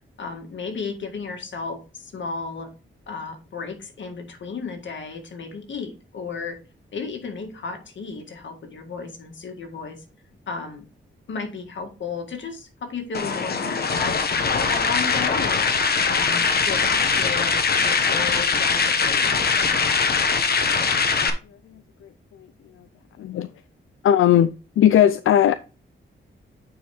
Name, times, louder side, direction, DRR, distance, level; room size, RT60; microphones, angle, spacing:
voice 1, 0.2-2.7 3.1-6.6 6.9-10.0 10.5-10.8 11.3-15.6 16.1-19.7, left 4 dB, 65° left, 1.9 m, -34 dB
sound 1, 13.1-21.3, left 5 dB, 50° left, 1.1 m, -21 dB
voice 2, 21.7-22.1 23.2-23.5 24.0-25.6, left 10 dB, 90° left, 0.4 m, -18 dB
9.0 x 4.8 x 3.5 m
wide cardioid pair, 130°, 20 cm